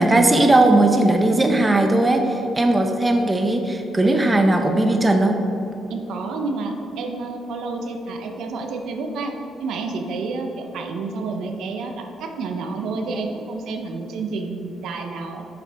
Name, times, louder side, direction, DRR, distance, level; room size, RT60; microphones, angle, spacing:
voice 1, 0.0-5.4, right 2 dB, 20° right, 4 dB, 0.8 m, -18 dB
voice 2, 5.9-9.3 9.6-15.4, right 3 dB, 80° right, 3 dB, 0.8 m, -29 dB
7.8 x 7.0 x 3.5 m, 2.9 s
cardioid pair, 90°, 0 cm